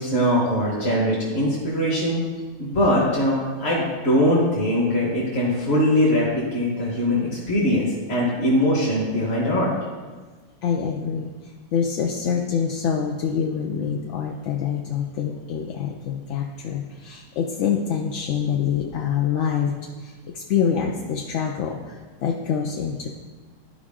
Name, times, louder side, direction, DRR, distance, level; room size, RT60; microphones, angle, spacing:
voice 1, 0.0-2.2 2.6-7.2 7.5-9.7, equal, 45° left, -6 dB, 1.6 m, -21 dB
voice 2, 10.6-19.7 20.0-23.1, left 7 dB, 65° left, 1 dB, 0.8 m, -26 dB
12.0 x 4.8 x 3.7 m, 1.4 s
omnidirectional pair, 1.6 m